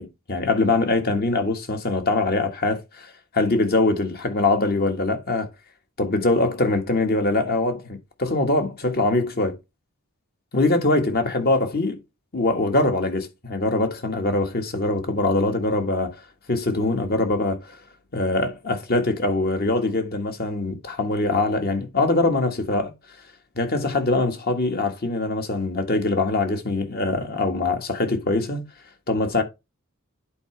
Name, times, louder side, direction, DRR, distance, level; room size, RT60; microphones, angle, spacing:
voice 1, 0.0-5.5 6.0-9.6 10.5-12.0 12.3-16.2 16.5-17.8 18.1-22.9 23.6-28.6 29.1-29.4, left 2 dB, 45° left, 1.7 m, -23 dB
11.0 x 4.9 x 3.4 m
head